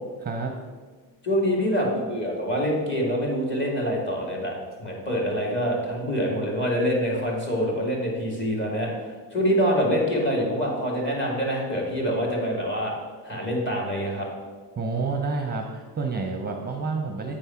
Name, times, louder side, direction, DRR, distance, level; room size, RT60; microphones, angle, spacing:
voice 1, 0.2-0.5 14.8-17.3, right 4 dB, 25° right, 2 dB, 0.7 m, -29 dB
voice 2, 1.2-12.9 13.2-14.3, equal, 25° left, -2 dB, 2.4 m, -25 dB
8.8 x 4.7 x 5.8 m, 1.5 s
cardioid pair, 125°, 43 cm